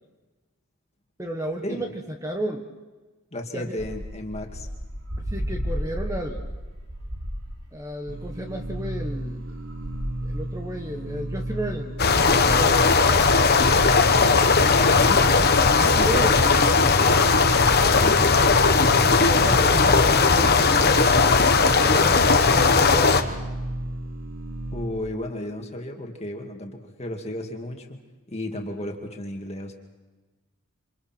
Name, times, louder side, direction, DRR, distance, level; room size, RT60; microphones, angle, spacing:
voice 1, 1.2-1.9 2.2-2.6 3.5-3.8 5.3-6.4 7.7-9.6 10.2-12.8 13.9-15.0 15.4-16.4 18.8-21.1 21.6-23.1, equal, 15° right, 3 dB, 1.3 m, -33 dB
voice 2, 3.3-4.7 14.8-15.2 17.9-18.4 24.7-28.0 28.3-29.7, left 1 dB, 30° left, 2 dB, 2.3 m, -33 dB
sound 1, 3.8-7.9 8.5-10.4 11.2-11.3 11.5-17.9, equal, 90° right, 5.7 m, -35 dB
sound 2, 8.1-24.9, right 1 dB, 70° right, 3.3 m, -33 dB
sound 3, 12.0-23.2, left 4 dB, 45° left, 1.2 m, -18 dB
27.5 x 27.0 x 4.5 m, 1.2 s
head